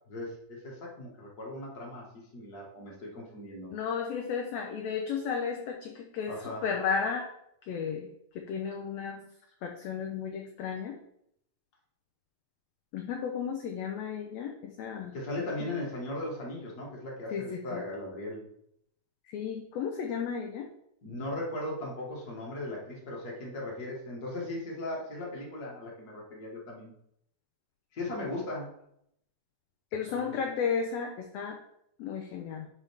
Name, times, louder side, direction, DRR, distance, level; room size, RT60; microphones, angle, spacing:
voice 1, 0.1-2.1 2.3-3.7 6.2-6.6 15.1-18.5 21.0-26.9 27.9-28.7 30.1-30.4, left 1 dB, 35° left, -3 dB, 1.8 m, -38 dB
voice 2, 3.7-7.3 7.7-8.1 8.5-9.2 9.6-10.9 12.9-15.1 17.3-17.8 19.3-20.7 29.9-31.6 32.0-32.7, left 6 dB, 75° left, 3 dB, 1.6 m, -33 dB
10.0 x 4.2 x 3.5 m, 0.75 s
omnidirectional pair, 3.6 m